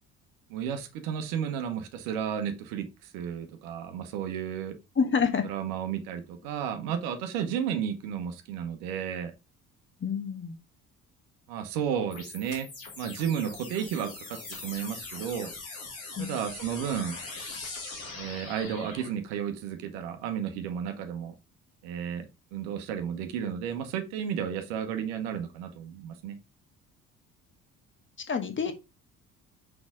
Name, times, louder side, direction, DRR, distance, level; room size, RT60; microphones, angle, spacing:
voice 1, 0.5-4.7 5.4-9.3 11.5-12.7 13.0-15.5 16.2-17.2 18.2-21.3 21.8-22.2 22.5-26.4, right 8 dB, 60° right, 1.1 m, -33 dB
voice 2, 5.0-5.4 10.0-10.5 16.2-16.3 28.3-28.7, left 6 dB, 30° left, 1.4 m, -27 dB
sound 1, 12.1-19.1, left 3 dB, 80° left, 2.4 m, -41 dB
6.2 x 4.9 x 3.7 m
figure-of-eight pair, 50°, 40 cm